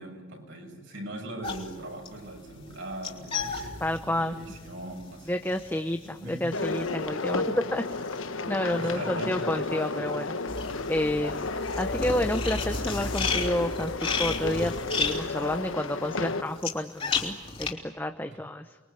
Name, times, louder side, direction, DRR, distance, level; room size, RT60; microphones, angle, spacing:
voice 1, 0.0-5.4 6.0-6.4 8.8-9.7 11.6-11.8 18.3-18.4, right 1 dB, 65° right, 3 dB, 6.4 m, -41 dB
sound 1, 1.4-8.9 9.2-17.7, left 4 dB, 30° left, 3.3 m, -34 dB
voice 2, 3.8-4.3 5.3-7.8 8.5-10.4 10.9-11.5 11.8-14.7 15.0-18.8, left 1 dB, 10° left, 7 dB, 0.8 m, -30 dB
sound 2, 6.5-16.4, left 3 dB, 80° left, 1.4 m, -32 dB
30.0 x 22.0 x 8.3 m, 1.4 s
head